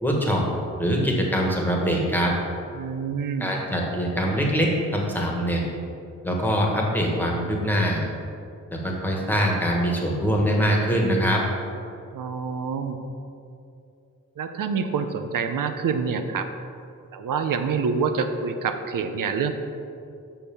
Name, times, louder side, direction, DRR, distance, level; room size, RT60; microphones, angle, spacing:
voice 1, 0.0-0.4 0.8-2.3 3.4-5.6 6.2-8.0 8.7-11.4, equal, 5° left, -2 dB, 1.5 m, -23 dB
voice 2, 2.7-3.5 12.1-13.0 14.4-16.5 17.1-19.5, right 5 dB, 85° right, 8 dB, 0.7 m, -27 dB
6.3 x 5.7 x 6.9 m, 2.5 s
wide cardioid pair, 110°, 32 cm